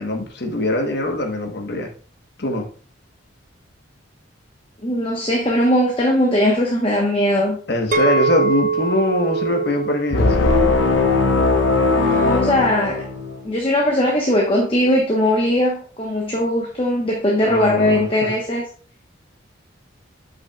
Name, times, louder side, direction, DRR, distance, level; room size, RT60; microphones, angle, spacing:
voice 1, 0.0-1.9 2.4-2.7 7.7-10.6 17.4-18.3, left 1 dB, 55° left, 3 dB, 1.1 m, -22 dB
voice 2, 4.8-7.6 11.9-13.0 13.4-18.6, left 1 dB, 30° left, -1 dB, 1.0 m, -19 dB
Chink clink, 7.9-12.2 12.7-13.1, right 4 dB, 40° right, 0.5 m, -25 dB
sound 1, 10.1-13.5, left 3 dB, 70° left, 0.9 m, -18 dB
8.7 x 5.6 x 2.3 m, 0.42 s
head